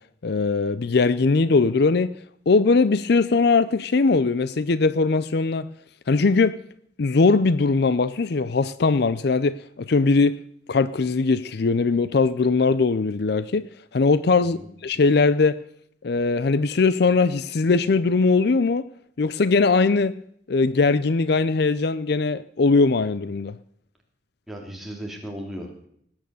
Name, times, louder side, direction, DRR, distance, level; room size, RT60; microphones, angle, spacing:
voice 1, 0.2-2.1 2.5-5.7 6.1-6.6 7.0-10.4 10.7-15.6 16.0-18.9 19.2-20.1 20.5-23.6, left 4 dB, 60° left, 0.5 m, -20 dB
voice 2, 24.5-25.9, equal, ahead, 3.0 m, -36 dB
19.0 x 9.1 x 6.9 m
head